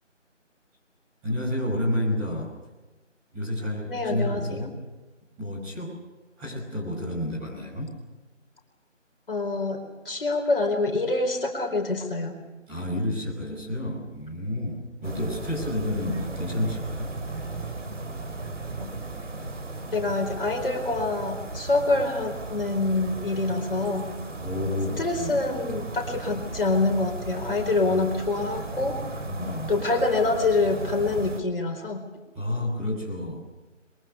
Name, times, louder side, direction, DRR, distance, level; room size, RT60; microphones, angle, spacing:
voice 1, 1.2-2.5 3.3-4.8 5.4-6.0 6.4-7.9 12.7-17.1 17.6-17.7 24.4-25.4 27.9-28.1 29.2-29.8 32.3-33.4, left 1 dB, 10° right, -6 dB, 6.0 m, -30 dB
voice 2, 3.9-4.7 9.3-12.4 19.9-24.1 25.0-29.0 29.7-32.1, left 3 dB, 50° left, 3 dB, 4.5 m, -26 dB
sound 1, 15.0-31.4, right 3 dB, 75° right, 3.4 m, -36 dB
27.5 x 23.5 x 6.8 m, 1.2 s
figure-of-eight pair, 170°, 37 cm